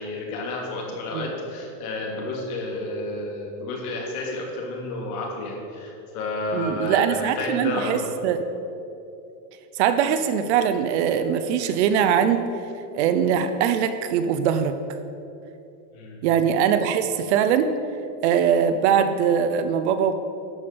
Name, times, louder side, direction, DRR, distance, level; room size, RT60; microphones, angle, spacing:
voice 1, 0.0-8.1 15.9-16.2, left 2 dB, 65° left, -1 dB, 2.9 m, -31 dB
voice 2, 6.5-8.4 9.8-12.5 12.9-14.7 16.2-17.7 18.2-20.1, right 8 dB, 45° right, 10 dB, 0.5 m, -22 dB
12.5 x 5.3 x 6.8 m, 2.7 s
supercardioid pair, 165°, 48 cm